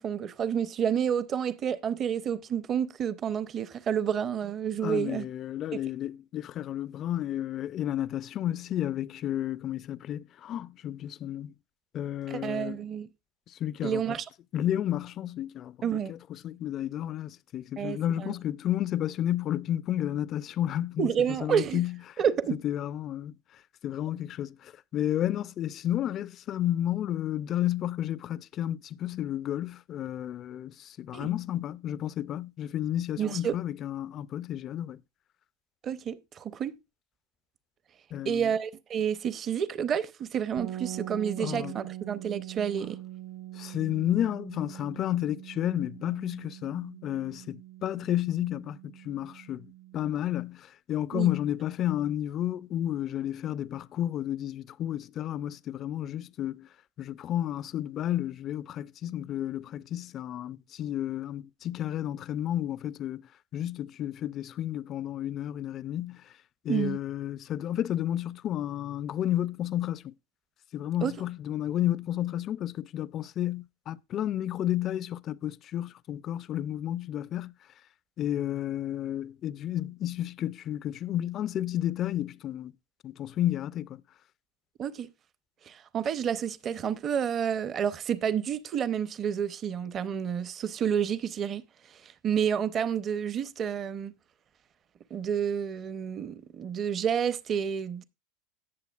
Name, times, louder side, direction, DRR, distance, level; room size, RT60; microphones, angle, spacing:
voice 1, 0.0-5.3 5.7-5.8 12.3-13.1 13.8-14.2 15.8-16.1 17.8-18.3 21.0-21.8 22.2-22.6 31.1-31.3 33.2-33.5 35.8-36.8 38.2-43.0 51.1-51.3 66.7-67.0 71.0-71.1 84.8-85.1 85.7-91.6 92.0-94.1 95.1-98.0, right 8 dB, 30° right, 0.7 m, -29 dB
voice 2, 4.8-11.5 11.9-12.8 13.5-14.2 14.5-15.8 16.1-22.0 22.5-23.3 23.8-35.0 38.1-38.5 41.4-41.7 43.5-49.7 49.9-56.7 57.0-63.2 63.5-66.2 66.6-70.1 70.7-77.5 78.2-82.7 83.0-84.0, left 12 dB, 35° left, 0.4 m, -31 dB
sound 1, 40.6-50.3, right 13 dB, 60° right, 1.2 m, -43 dB
17.0 x 6.7 x 2.4 m
supercardioid pair, 125°, 0 cm